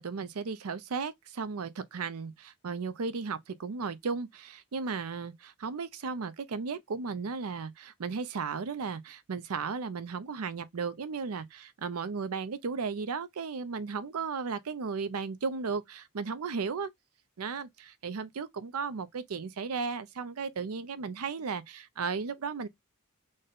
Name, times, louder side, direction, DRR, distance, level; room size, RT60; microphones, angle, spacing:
voice 1, 0.0-16.9 17.4-22.7, right 5 dB, 85° right, 0.5 m, -35 dB
4.0 x 2.1 x 3.6 m
head